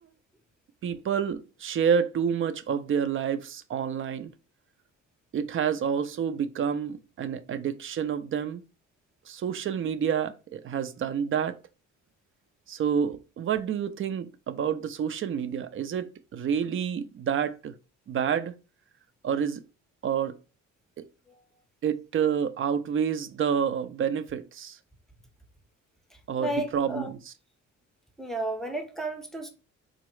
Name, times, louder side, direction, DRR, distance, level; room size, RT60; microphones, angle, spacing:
voice 1, 0.8-4.3 5.3-8.6 9.3-11.6 12.7-17.8 18.1-18.5 19.2-19.6 20.0-20.4 21.0-21.1 21.8-24.8 26.3-27.3, right 7 dB, 45° right, 0.4 m, -28 dB
voice 2, 26.4-27.1 28.2-29.5, right 1 dB, ahead, 0.6 m, -33 dB
3.7 x 2.0 x 3.1 m
cardioid pair, 90°, 30 cm